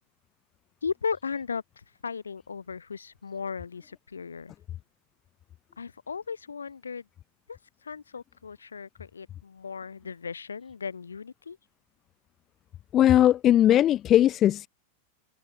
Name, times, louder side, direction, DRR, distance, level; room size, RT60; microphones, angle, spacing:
voice 1, 0.8-4.5 5.8-7.1 7.5-11.6, left 5 dB, 75° left, 5.3 m, -36 dB
voice 2, 12.9-14.7, left 12 dB, 30° left, 0.3 m, -19 dB
figure-of-eight pair, 90°, 0 cm